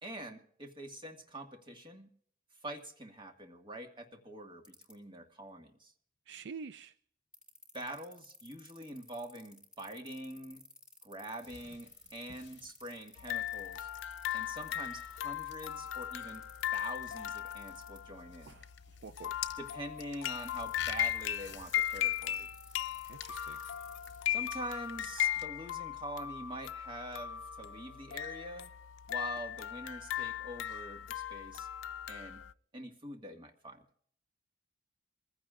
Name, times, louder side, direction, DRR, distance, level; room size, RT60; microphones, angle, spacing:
voice 1, 0.0-2.1 2.6-5.9 7.7-10.6 11.0-13.9 14.3-16.4 16.7-18.5 19.6-22.5 24.3-28.7 29.1-31.7 32.1-32.4 32.7-33.8, right 1 dB, 25° right, 4 dB, 1.8 m, -45 dB
sound 1, 4.6-4.9 7.3-18.0 20.3-24.2, left 2 dB, 5° right, 2.9 m, -54 dB
voice 2, 6.3-6.9 18.5-18.7 19.0-19.3 23.1-23.6, right 5 dB, 65° right, 13 dB, 0.4 m, -47 dB
sound 2, 11.4-25.5, left 9 dB, 65° left, 1.1 m, -51 dB
sound 3, 13.2-32.5, left 11 dB, 85° left, 0.4 m, -38 dB
24.0 x 15.5 x 2.5 m, 0.63 s
head